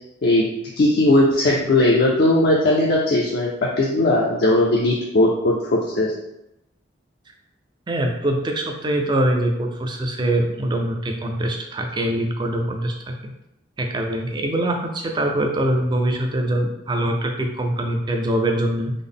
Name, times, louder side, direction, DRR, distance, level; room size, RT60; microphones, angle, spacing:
voice 1, 0.8-3.5 3.8-6.1, left 1 dB, 50° left, -3 dB, 0.4 m, -18 dB
voice 2, 7.9-13.3 13.8-18.9, right 1 dB, 20° right, 3 dB, 0.3 m, -23 dB
3.7 x 2.0 x 3.5 m, 0.87 s
head